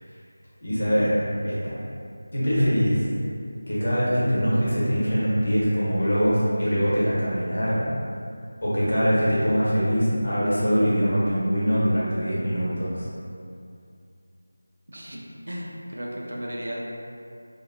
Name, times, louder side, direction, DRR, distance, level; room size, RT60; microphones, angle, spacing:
voice 1, 0.6-1.2 1.4-1.8 2.3-3.1 3.7-7.8 8.6-13.1, equal, 65° left, -9 dB, 1.0 m, -23 dB
voice 2, 14.9-16.8, equal, 80° right, -3 dB, 0.5 m, -35 dB
2.7 x 2.2 x 2.5 m, 2.4 s
figure-of-eight pair, 175°, 0 cm